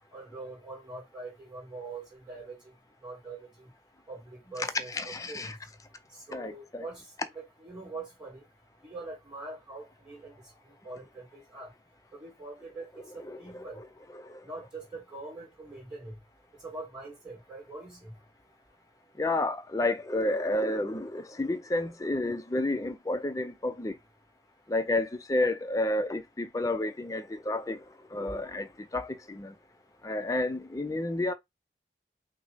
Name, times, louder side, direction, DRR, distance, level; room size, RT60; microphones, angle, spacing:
voice 1, 0.1-2.7 3.0-3.7 4.1-5.6 6.1-7.1 7.3-8.4 8.8-10.4 10.8-11.7 12.1-13.8 14.4-16.1 16.6-18.1, right 3 dB, 5° right, 2.6 m, -43 dB
voice 2, 4.9-5.6 6.3-6.8 13.3-13.4 14.2-14.4 19.2-24.0 24.7-27.8 28.1-29.6 30.0-31.3, left 2 dB, 20° left, 0.4 m, -30 dB
5.8 x 2.0 x 4.1 m
head